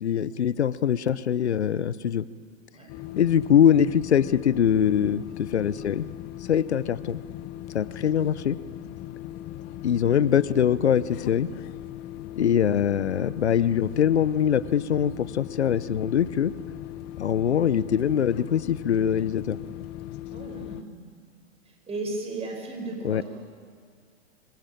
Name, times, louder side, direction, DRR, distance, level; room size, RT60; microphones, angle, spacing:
voice 1, 0.0-2.2 3.2-6.1 6.5-7.2 7.7-8.6 9.8-11.5 12.4-16.5 17.2-19.6 23.0-23.2, left 9 dB, 75° left, 18 dB, 0.9 m, -23 dB
sound 1, 2.9-20.8, left 13 dB, 30° left, 0.8 m, -39 dB
voice 2, 20.3-21.0 21.9-23.2, right 2 dB, 20° right, 1 dB, 6.5 m, -35 dB
26.0 x 21.5 x 9.1 m, 2.1 s
hypercardioid pair, 110°, 33 cm